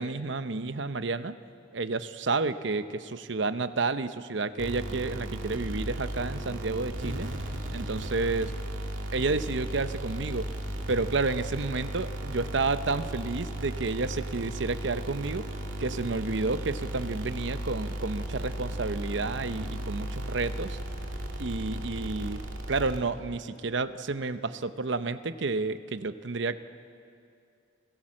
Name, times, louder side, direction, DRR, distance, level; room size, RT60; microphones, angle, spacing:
voice 1, 0.0-1.4 1.7-7.3 7.7-8.5 9.1-10.5 10.9-15.5 15.8-20.8 21.4-22.4 22.7-26.6, right 3 dB, 65° right, 12 dB, 0.8 m, -30 dB
sound 1, 4.6-23.4, right 1 dB, 85° right, 2.5 m, -35 dB
29.0 x 16.0 x 7.6 m, 2.5 s
head